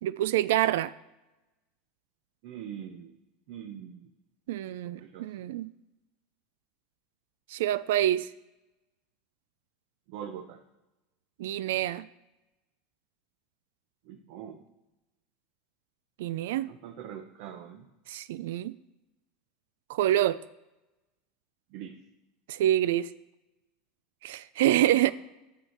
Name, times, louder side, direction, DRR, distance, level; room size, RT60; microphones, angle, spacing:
voice 1, 0.0-0.9 4.5-5.7 7.5-8.3 11.4-12.1 16.2-16.7 18.1-18.8 19.9-20.4 22.5-23.1 24.2-25.1, right 13 dB, 80° right, 16 dB, 0.3 m, -26 dB
voice 2, 2.4-3.1 3.5-4.1 5.0-5.5 10.1-10.6 14.1-14.6 16.7-17.9 21.7-22.0 25.1-25.2, right 9 dB, 55° right, 5 dB, 0.7 m, -42 dB
11.0 x 6.6 x 4.4 m, 1.0 s
supercardioid pair, 165°, 0 cm